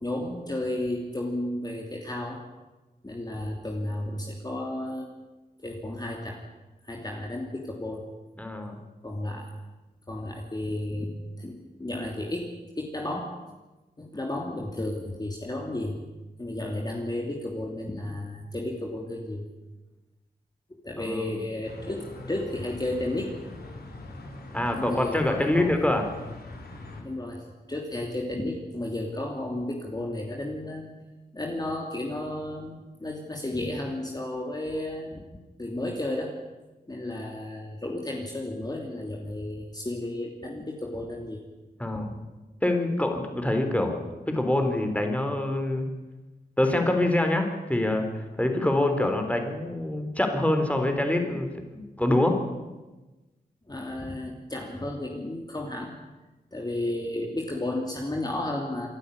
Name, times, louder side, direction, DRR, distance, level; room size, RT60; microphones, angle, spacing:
voice 1, 0.0-2.4 3.0-5.1 5.6-6.4 6.8-8.1 9.0-9.5 10.1-13.3 14.0-16.0 16.4-19.4 20.8-23.3 24.8-25.7 27.0-30.9 31.3-35.2 35.6-36.4 36.9-41.4 41.9-42.0 53.7-55.9 56.5-58.9, left 1 dB, 25° left, 0 dB, 3.0 m, -33 dB
voice 2, 8.4-8.8 21.0-21.2 24.5-26.1 41.8-42.1 42.6-44.0 44.3-45.9 46.6-52.4, left 1 dB, 10° left, 5 dB, 3.8 m, -25 dB
sound 1, 21.6-27.0, left 2 dB, 65° left, 4.7 m, -42 dB
27.0 x 11.5 x 9.9 m, 1.1 s
wide cardioid pair, 75°, 17 cm